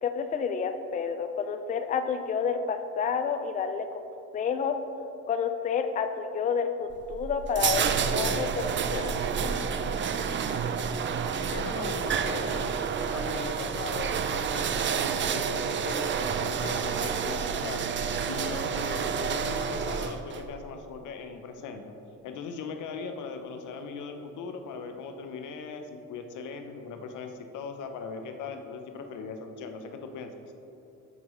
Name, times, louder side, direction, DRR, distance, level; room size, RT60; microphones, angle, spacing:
voice 1, 0.0-4.8 5.3-9.1 9.4-9.5, left 6 dB, 25° left, 8 dB, 0.4 m, -30 dB
sound 1, 6.9-20.5, right 6 dB, 40° right, 0.4 m, -29 dB
voice 2, 11.5-12.7 13.1-17.9 18.2-21.8 22.2-30.3, left 5 dB, 80° left, 6 dB, 0.7 m, -39 dB
7.9 x 5.4 x 3.1 m, 2.9 s
cardioid pair, 90°, 30 cm